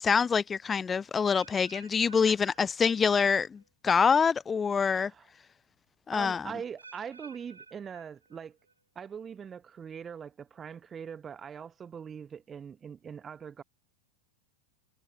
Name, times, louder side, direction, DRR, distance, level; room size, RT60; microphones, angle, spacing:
voice 1, 0.0-5.1 6.1-6.5, left 6 dB, 20° left, 0.4 m, -26 dB
sound 1, 1.3-3.3 3.6-4.0 4.7-4.8 6.8-8.7 9.1-9.5 10.1-10.2, right 4 dB, 80° right, 7.9 m, -54 dB
voice 2, 4.9-5.3 6.1-8.6 8.9-13.6, right 7 dB, 20° right, 1.4 m, -42 dB
figure-of-eight pair, 90°, 0 cm